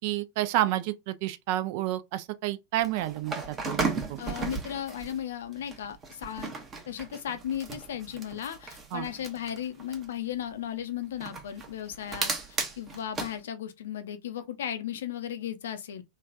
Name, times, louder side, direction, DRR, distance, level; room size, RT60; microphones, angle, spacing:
voice 1, 0.0-4.2 8.9-9.1, right 14 dB, 50° right, 0.3 m, -30 dB
sound 1, 2.8-5.2 5.5-10.1 11.2-13.3, right 4 dB, 25° right, 0.8 m, -35 dB
voice 2, 4.2-6.5 6.9-12.3 12.8-16.0, left 10 dB, 60° left, 0.5 m, -35 dB
3.1 x 2.2 x 2.5 m
figure-of-eight pair, 90°, 0 cm